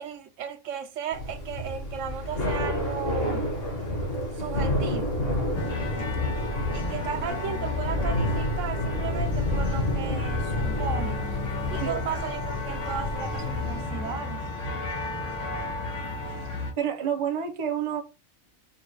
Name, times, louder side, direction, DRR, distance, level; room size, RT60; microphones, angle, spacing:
voice 1, 0.0-3.5 4.4-5.3 6.7-11.3 11.7-14.5, right 7 dB, 85° right, 1.0 m, -35 dB
Thunder / Rain, 1.1-14.0, left 1 dB, 50° left, 1.3 m, -30 dB
sound 1, 5.5-16.7, left 3 dB, 90° left, 1.6 m, -33 dB
voice 2, 16.8-18.0, right 8 dB, 35° right, 0.6 m, -28 dB
5.3 x 2.1 x 3.2 m
omnidirectional pair, 1.3 m